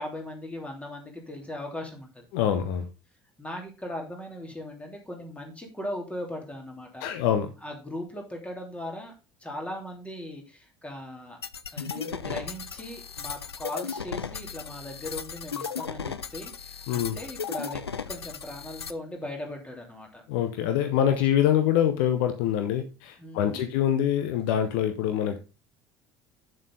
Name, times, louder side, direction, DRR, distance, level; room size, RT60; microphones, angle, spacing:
voice 1, 0.0-2.3 3.4-7.1 7.6-9.1 9.4-11.4 11.7-17.8 18.1-20.2 23.2-23.7, left 1 dB, 10° left, 1 dB, 3.2 m, -38 dB
voice 2, 2.3-2.9 7.0-7.5 16.9-17.2 20.3-25.4, left 10 dB, 60° left, 7 dB, 0.9 m, -25 dB
sound 1, 11.4-18.9, left 6 dB, 85° left, 0.4 m, -36 dB
Keyboard (musical), 14.2-16.0, equal, 15° right, 3.5 m, -53 dB
8.0 x 7.3 x 3.9 m, 0.31 s
figure-of-eight pair, 60°, 13 cm